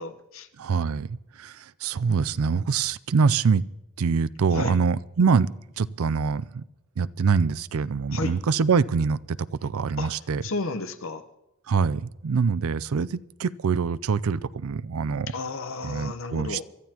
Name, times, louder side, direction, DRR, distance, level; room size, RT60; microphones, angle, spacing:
voice 1, 0.0-0.5 4.5-4.8 8.1-8.4 10.0-10.1 10.4-11.2 15.3-16.6, left 3 dB, 60° left, 0.9 m, -32 dB
voice 2, 0.6-3.6 4.0-5.5 5.8-6.6 7.0-10.4 11.7-15.3 15.8-16.6, right 5 dB, 70° right, 0.5 m, -24 dB
24.0 x 13.0 x 2.9 m
head